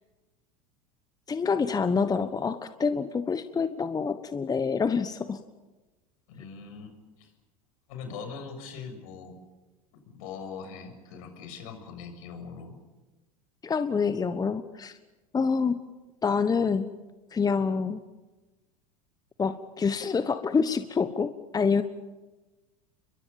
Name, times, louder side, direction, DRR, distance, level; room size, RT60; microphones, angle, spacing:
voice 1, 1.3-5.4 13.6-15.0 15.3-15.8 16.2-16.9 17.3-18.0 19.4-21.8, left 5 dB, 20° left, 11 dB, 1.3 m, -27 dB
voice 2, 6.3-7.3 7.9-9.3 9.9-12.8, left 5 dB, 65° left, 6 dB, 6.8 m, -41 dB
30.0 x 23.0 x 7.1 m, 1.1 s
hypercardioid pair, 90°, 20 cm